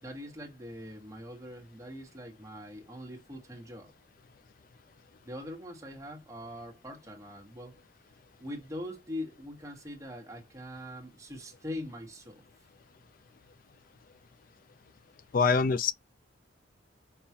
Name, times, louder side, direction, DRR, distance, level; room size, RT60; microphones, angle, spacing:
voice 1, 0.0-3.9 5.2-7.8 8.4-12.4, left 1 dB, 15° right, 1.1 m, -42 dB
voice 2, 15.3-15.9, left 5 dB, 45° left, 0.3 m, -24 dB
5.3 x 2.3 x 2.8 m
head